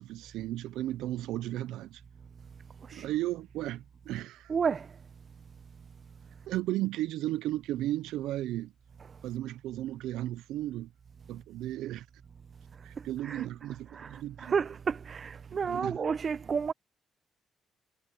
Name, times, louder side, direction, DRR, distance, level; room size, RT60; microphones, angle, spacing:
voice 1, 0.0-2.0 2.9-4.5 6.5-8.7 9.2-10.9 11.3-12.1 12.8-14.5 15.7-16.0, right 14 dB, 90° right, 0.4 m, -34 dB
voice 2, 4.5-4.9 9.1-9.2 13.0-13.5 13.9-16.7, right 6 dB, 45° right, 0.8 m, -32 dB
cardioid pair, 90°, 0 cm